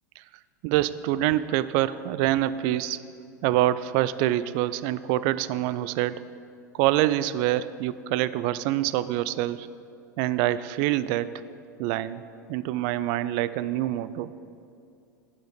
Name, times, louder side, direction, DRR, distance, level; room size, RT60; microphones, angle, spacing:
voice 1, 0.6-3.0 3.4-6.2 6.7-9.7 10.2-11.3 11.8-12.2 12.5-14.3, right 14 dB, 45° right, 16 dB, 0.3 m, -25 dB
10.0 x 7.0 x 5.2 m, 2.5 s
figure-of-eight pair, 85°, 10 cm